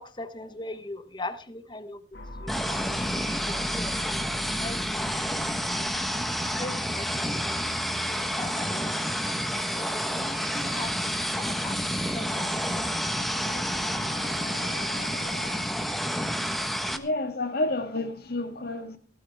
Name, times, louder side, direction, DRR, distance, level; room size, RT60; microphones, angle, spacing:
voice 1, 0.0-2.0 2.4-6.0 6.6-7.7 8.1-9.0 9.7-13.0 13.5-13.7, left 2 dB, 25° left, 1.1 m, -41 dB
sound 1, 2.1-15.6, left 1 dB, 80° left, 2.1 m, -42 dB
sound 2, 2.5-17.0, equal, ahead, 1.2 m, -29 dB
voice 2, 16.9-19.0, left 2 dB, 60° left, 1.8 m, -30 dB
16.5 x 13.5 x 3.5 m
head